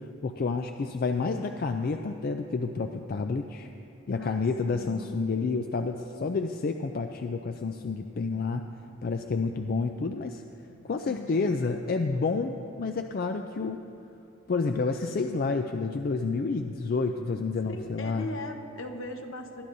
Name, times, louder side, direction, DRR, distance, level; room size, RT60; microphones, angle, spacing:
voice 1, 0.2-3.7 4.1-8.6 9.0-10.4 10.9-13.8 14.5-18.3, left 4 dB, 45° left, 6 dB, 0.3 m, -29 dB
voice 2, 4.1-5.1 11.1-11.8 17.6-19.6, left 1 dB, 70° left, 4 dB, 1.0 m, -39 dB
20.0 x 12.5 x 2.7 m, 2.9 s
head